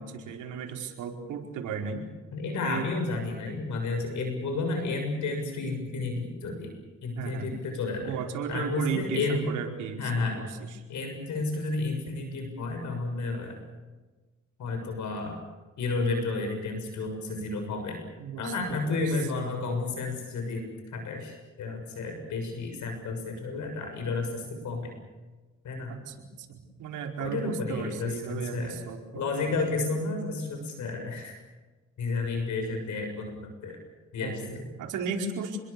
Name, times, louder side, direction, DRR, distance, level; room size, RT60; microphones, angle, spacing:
voice 1, 0.0-2.1 2.6-2.9 7.1-7.5 8.0-10.5 18.2-19.0 25.9-29.6 34.2-35.6, right 6 dB, 80° right, 2 dB, 4.9 m, -35 dB
voice 2, 2.3-6.7 7.0-8.1 8.5-9.5 10.0-10.4 10.9-13.6 14.6-15.4 15.8-18.0 18.4-24.9 25.6-25.9 27.2-28.8 29.1-31.4 32.0-33.8 34.1-34.7, left 3 dB, 75° left, 4 dB, 6.8 m, -31 dB
29.0 x 22.5 x 7.0 m, 1.2 s
cardioid pair, 90°, 30 cm